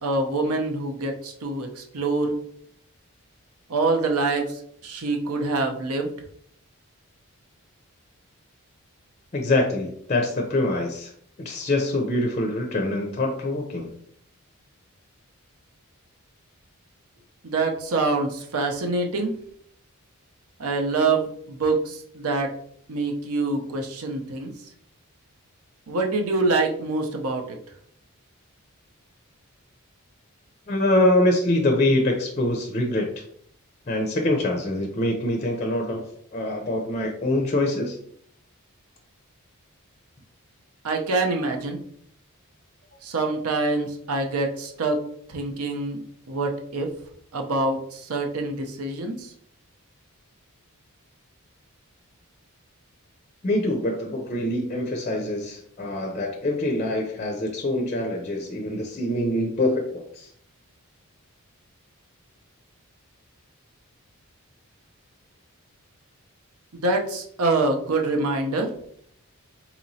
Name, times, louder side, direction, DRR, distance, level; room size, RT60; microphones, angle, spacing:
voice 1, 0.0-2.4 3.7-6.1 17.4-19.3 20.6-22.5 22.9-24.5 25.9-27.4 40.8-41.8 43.0-45.0 45.3-46.0 46.3-46.9 47.3-49.3 66.7-68.7, right 3 dB, 75° right, 3 dB, 0.7 m, -25 dB
voice 2, 9.3-11.1 11.4-13.9 30.7-33.1 33.9-36.0 36.3-38.0 53.4-59.8 60.1-60.3, left 1 dB, 30° left, 2 dB, 0.5 m, -24 dB
4.2 x 2.9 x 2.7 m, 0.64 s
head